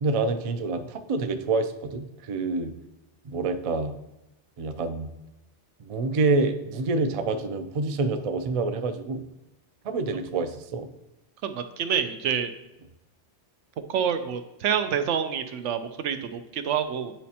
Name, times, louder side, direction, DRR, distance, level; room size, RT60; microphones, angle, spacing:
voice 1, 0.0-2.7 3.2-3.9 4.6-5.1 5.8-9.3 9.8-10.9, right 3 dB, 60° right, 8 dB, 0.3 m, -27 dB
voice 2, 11.4-12.5 13.9-17.1, right 8 dB, 85° right, 9 dB, 0.9 m, -27 dB
10.0 x 4.1 x 2.8 m, 0.93 s
omnidirectional pair, 1.2 m